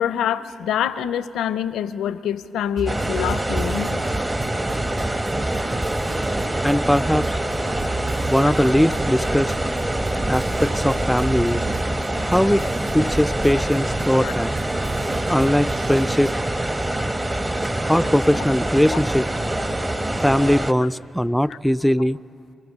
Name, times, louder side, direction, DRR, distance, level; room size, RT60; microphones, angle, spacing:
voice 1, 0.0-4.0 14.2-14.3 21.5-21.6, left 9 dB, 80° left, 16 dB, 0.5 m, -25 dB
sound 1, 2.8-16.4, right 2 dB, 60° right, 1.8 m, -33 dB
sound 2, 2.9-20.7, right 1 dB, 25° right, 1.0 m, -25 dB
voice 2, 6.6-7.4 8.3-9.5 10.3-11.6 12.2-12.7 12.9-14.6 15.3-16.3 17.9-19.3 20.2-22.2, equal, 5° left, 17 dB, 0.4 m, -20 dB
27.0 x 13.5 x 7.2 m, 2.9 s
supercardioid pair, 45°, 0 cm